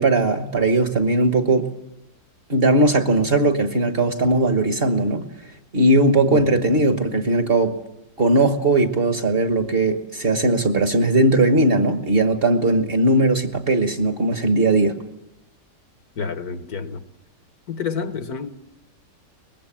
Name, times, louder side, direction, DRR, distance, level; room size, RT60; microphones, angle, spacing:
voice 1, 0.0-1.7 2.5-5.3 5.7-7.8 8.2-15.0, right 2 dB, 35° right, 1.4 m, -19 dB
voice 2, 6.3-6.6 16.2-17.0 17.7-18.5, left 5 dB, 60° left, 1.6 m, -29 dB
24.0 x 20.5 x 7.4 m
omnidirectional pair, 1.8 m